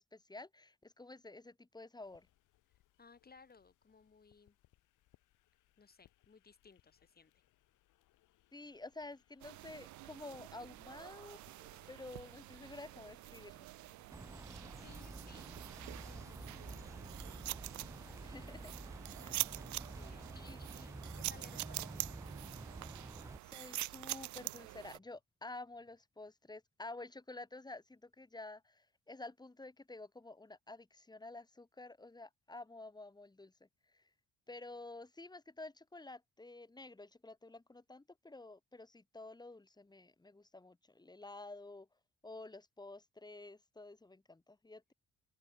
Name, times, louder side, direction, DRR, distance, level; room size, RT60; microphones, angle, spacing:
voice 1, 0.0-2.3 8.5-11.4 11.9-13.7 18.2-18.7 19.2-19.4 19.9-20.6 23.5-33.5 34.5-41.9 42.2-44.9, left 2 dB, 15° left, 1.8 m, -51 dB
sound 1, 2.0-16.3, left 15 dB, 85° left, 3.0 m, -73 dB
voice 2, 3.0-4.6 5.8-7.3 14.6-15.5 16.0-18.1 18.4-18.8 20.0-22.2, left 5 dB, 30° left, 4.1 m, -62 dB
sound 2, 9.4-25.0, right 18 dB, 70° right, 0.4 m, -46 dB
sound 3, 14.1-23.4, right 2 dB, 10° right, 0.9 m, -49 dB
open air
cardioid pair, 90°, 30 cm